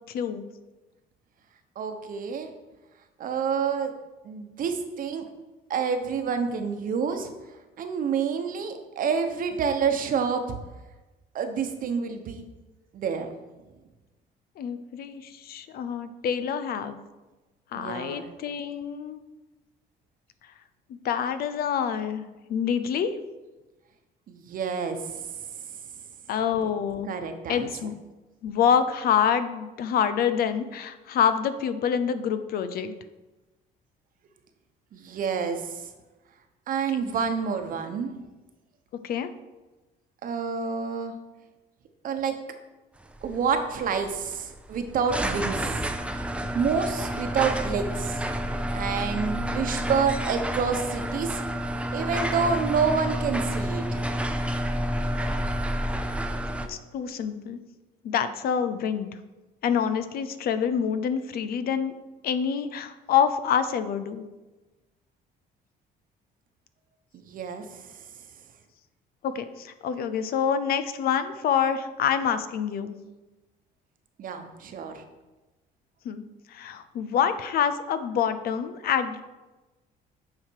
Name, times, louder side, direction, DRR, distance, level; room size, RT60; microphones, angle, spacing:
voice 1, 0.1-0.4 14.6-17.0 17.7-19.2 20.9-22.2 22.5-23.2 26.3-27.1 27.5-27.9 28.4-32.9 39.0-39.3 56.7-57.6 58.0-59.1 59.6-61.9 62.2-64.3 69.2-73.0 76.0-79.3, left 8 dB, 65° left, 11 dB, 0.6 m, -26 dB
voice 2, 1.8-2.5 3.2-3.9 4.2-5.3 5.7-7.3 7.8-10.5 11.3-12.4 12.9-13.3 17.8-18.3 24.3-25.1 27.1-27.7 34.9-35.9 36.7-38.1 40.2-41.1 42.0-42.4 43.2-45.9 46.5-48.2 48.7-51.4 51.9-54.1 67.1-67.9 74.2-75.0, right 6 dB, 55° right, 7 dB, 1.0 m, -28 dB
sound 1, 43.0-56.7, equal, 5° right, 0.6 m, -29 dB
9.2 x 4.9 x 4.7 m, 1.1 s
cardioid pair, 110°, 17 cm